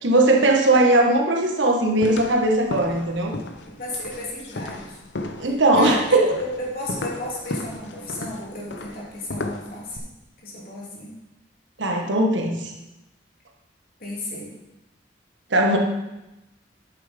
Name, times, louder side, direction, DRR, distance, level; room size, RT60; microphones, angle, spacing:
voice 1, 0.0-3.3 5.4-6.3 11.8-12.7 15.5-15.8, right 2 dB, 80° right, 1 dB, 1.4 m, -19 dB
sound 1, 2.0-10.0, left 2 dB, 70° left, 0.8 m, -34 dB
voice 2, 3.7-5.0 5.4-10.1 10.4-11.1 14.0-14.5, left 1 dB, 50° left, -4 dB, 2.8 m, -34 dB
8.3 x 7.1 x 5.2 m, 0.96 s
head